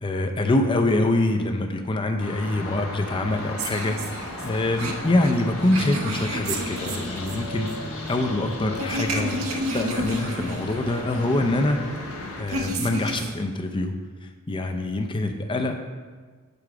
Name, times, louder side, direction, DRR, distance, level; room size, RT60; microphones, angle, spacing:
voice 1, 0.0-7.7 8.1-11.8 12.4-13.9 14.5-15.7, left 2 dB, 25° left, 5 dB, 0.5 m, -25 dB
sound 1, 2.2-12.4, left 2 dB, 70° left, 1.2 m, -36 dB
sound 2, 3.6-13.3, right 1 dB, 75° right, 0.8 m, -32 dB
6.9 x 4.5 x 4.8 m, 1.5 s
head